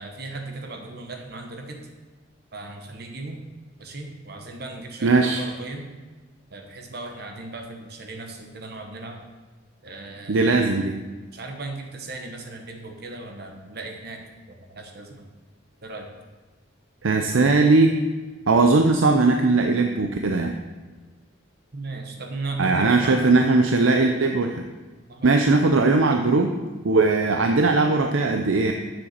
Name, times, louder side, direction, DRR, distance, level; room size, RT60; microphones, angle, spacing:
voice 1, 0.0-1.8 2.5-3.4 3.8-5.9 6.5-9.2 9.8-10.6 11.3-15.3 15.8-16.1 21.7-23.4 25.1-25.7, right 2 dB, 50° right, 3 dB, 1.0 m, -36 dB
voice 2, 5.0-5.4 10.3-10.9 17.0-17.9 18.5-20.6 22.6-24.6 25.2-26.5 26.8-28.7, right 3 dB, 75° right, 4 dB, 0.6 m, -19 dB
7.6 x 7.1 x 6.5 m, 1.3 s
head